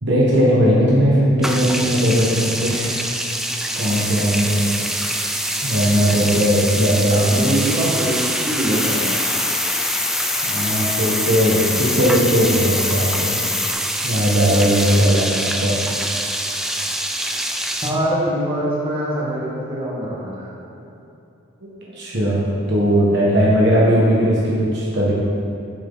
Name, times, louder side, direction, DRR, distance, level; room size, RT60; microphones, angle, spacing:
voice 1, 0.0-3.0 3.7-4.7 5.6-7.2 10.4-13.5 14.0-15.8 20.6-20.7 21.6-25.1, equal, 55° right, -6 dB, 1.4 m, -18 dB
sound 1, 1.4-17.9, right 1 dB, ahead, 0.3 m, -24 dB
voice 2, 7.1-9.1 17.8-20.5, right 1 dB, 25° right, -7 dB, 2.0 m, -23 dB
Cricket, 8.7-13.7, left 8 dB, 35° left, 0.8 m, -27 dB
10.0 x 7.0 x 4.1 m, 2.7 s
head